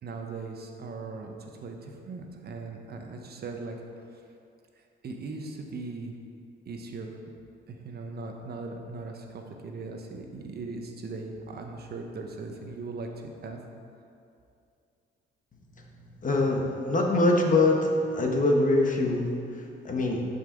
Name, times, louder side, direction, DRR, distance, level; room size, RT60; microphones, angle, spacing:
voice 1, 0.0-4.1 5.0-6.1 6.7-7.2 7.7-13.1 13.4-13.6, right 3 dB, 55° right, 3 dB, 1.0 m, -39 dB
voice 2, 16.2-20.2, left 2 dB, 40° left, 1 dB, 1.2 m, -24 dB
11.0 x 5.6 x 3.9 m, 2.5 s
cardioid pair, 90°, 20 cm